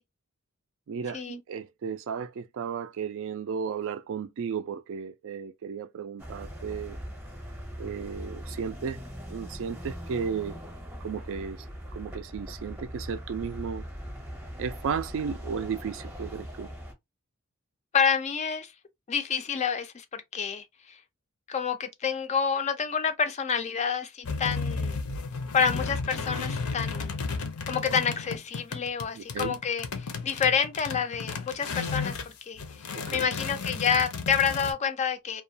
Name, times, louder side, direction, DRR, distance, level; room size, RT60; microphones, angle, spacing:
voice 1, 0.9-7.0 7.8-9.0 9.3-10.6 11.0-11.7 11.9-13.8 14.6-16.7 29.1-29.6 32.9-33.3, right 6 dB, 60° right, 0.3 m, -34 dB
sound 1, 6.2-16.9, equal, 10° right, 0.7 m, -40 dB
voice 2, 17.9-18.7 19.1-21.0 21.5-25.0 25.5-27.2 27.7-32.2 32.5-32.6 33.1-35.4, left 6 dB, 30° left, 0.3 m, -28 dB
sound 2, 24.2-32.3 32.6-34.7, left 4 dB, 80° left, 0.5 m, -33 dB
2.3 x 2.1 x 2.6 m
head